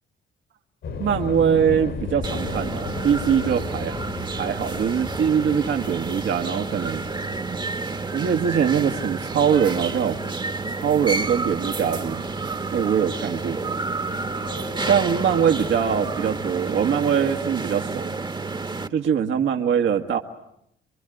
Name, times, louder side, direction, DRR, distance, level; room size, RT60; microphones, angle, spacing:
sound 1, 0.8-17.0, left 5 dB, 75° left, 5.2 m, -38 dB
voice 1, 1.0-7.0 8.1-10.2 10.7-12.3 12.7-13.6 14.9-18.2 18.9-20.2, right 8 dB, 70° right, 3 dB, 1.7 m, -22 dB
sound 2, 2.2-18.9, right 3 dB, 25° right, 1.3 m, -30 dB
28.0 x 23.5 x 9.2 m, 0.78 s
cardioid pair, 90°, 20 cm